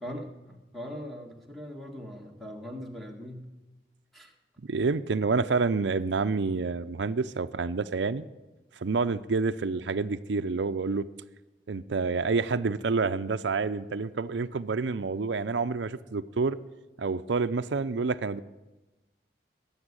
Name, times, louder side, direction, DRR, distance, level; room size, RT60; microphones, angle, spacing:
voice 1, 0.0-3.5 4.1-4.3, equal, ahead, 2 dB, 1.7 m, -41 dB
voice 2, 4.6-8.2 8.8-11.1 11.7-16.6 17.0-18.4, right 4 dB, 80° right, 12 dB, 0.5 m, -28 dB
18.5 x 7.2 x 9.7 m, 1.1 s
head